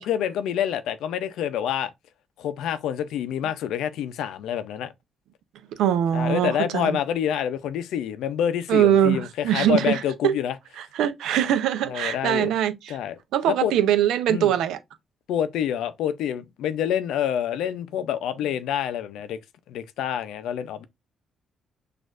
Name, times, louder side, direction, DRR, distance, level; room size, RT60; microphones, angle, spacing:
voice 1, 0.0-1.9 2.4-4.9 6.1-10.6 11.9-12.5 12.9-13.2 13.6-13.7 14.3-14.5 15.3-19.4 19.7-20.8, left 9 dB, 85° left, 0.5 m, -27 dB
voice 2, 5.8-7.0 8.7-10.4 10.8-13.0 13.3-14.8, right 10 dB, 85° right, 0.6 m, -22 dB
6.3 x 2.5 x 2.5 m
cardioid pair, 90°, 0 cm